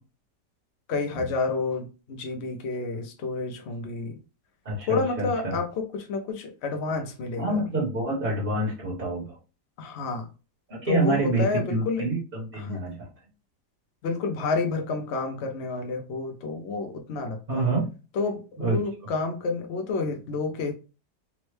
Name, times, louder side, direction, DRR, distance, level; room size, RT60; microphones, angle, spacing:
voice 1, 0.9-4.2 4.9-7.6 9.8-10.3 10.8-12.0 12.5-12.8 14.0-17.7 18.1-20.7, left 3 dB, 75° left, 0.6 m, -29 dB
voice 2, 4.6-5.6 7.4-9.4 10.7-11.4 11.7-12.2 12.5-13.1 17.5-17.9 18.6-18.8, right 2 dB, 35° right, 1.2 m, -27 dB
3.5 x 2.1 x 3.1 m
omnidirectional pair, 1.8 m